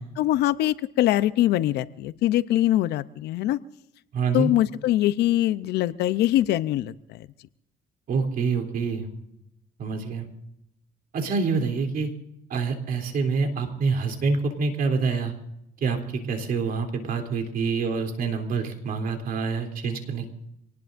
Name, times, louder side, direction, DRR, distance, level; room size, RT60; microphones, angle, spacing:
voice 1, 0.0-3.6 4.3-7.3, left 14 dB, 80° left, 15 dB, 0.7 m, -23 dB
voice 2, 4.1-4.5 8.1-9.1 9.8-10.3 11.1-12.1 12.5-15.3 15.8-20.3, right 4 dB, 60° right, 4 dB, 3.2 m, -26 dB
26.5 x 19.0 x 2.6 m, 0.81 s
cardioid pair, 110°, 17 cm